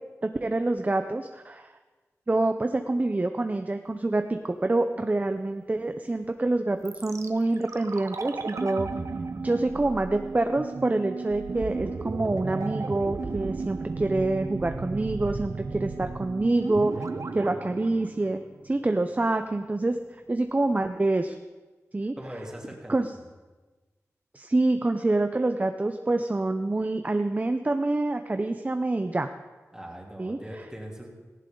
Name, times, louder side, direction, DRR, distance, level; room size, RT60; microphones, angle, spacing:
voice 1, 0.2-1.7 2.3-8.9 9.4-17.0 17.3-20.0 20.3-21.4 21.9-22.1 22.9-23.1 24.3-29.3 30.2-30.4, right 2 dB, 30° right, 7 dB, 0.7 m, -26 dB
sound 1, 6.8-18.8 19.1-19.2, right 4 dB, 70° right, 0.9 m, -34 dB
voice 2, 22.2-23.2 29.7-31.1, equal, 10° right, -1 dB, 3.3 m, -41 dB
17.5 x 15.0 x 3.9 m, 1.3 s
wide cardioid pair, 80°, 5 cm